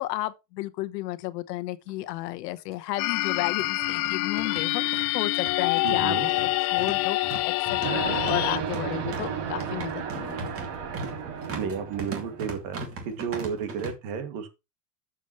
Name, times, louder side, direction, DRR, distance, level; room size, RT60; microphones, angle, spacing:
voice 1, 0.0-6.1 6.6-7.2 7.4-10.5, left 17 dB, 80° left, 1.2 m, -32 dB
sound 1, 1.9-2.0 2.2-2.3 3.2-13.9, right 4 dB, 30° right, 2.5 m, -39 dB
sound 2, 3.0-8.6, left 22 dB, 65° left, 0.6 m, -26 dB
voice 2, 5.8-6.3 11.3-14.5, right 6 dB, 55° right, 2.4 m, -32 dB
sound 3, 7.8-12.6, right 7 dB, 70° right, 4.5 m, -33 dB
12.0 x 7.4 x 3.2 m
supercardioid pair, 165°, 48 cm